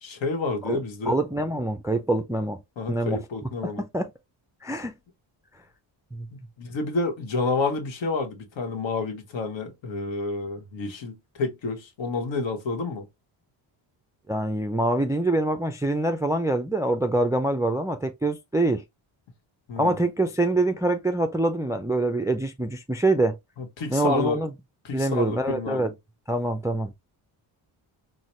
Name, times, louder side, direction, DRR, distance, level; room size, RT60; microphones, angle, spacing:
voice 1, 0.0-1.2 2.8-3.8 6.3-13.1 19.7-20.0 23.6-24.4 24.8-25.9, left 3 dB, 65° left, 1.1 m, -29 dB
voice 2, 1.0-2.6 2.9-3.2 3.6-4.1 4.6-4.9 6.1-6.3 14.3-18.8 19.8-23.4 23.9-24.5 24.9-25.9 26.3-26.9, right 2 dB, 5° right, 0.3 m, -25 dB
4.0 x 2.1 x 3.0 m
cardioid pair, 75°, 50 cm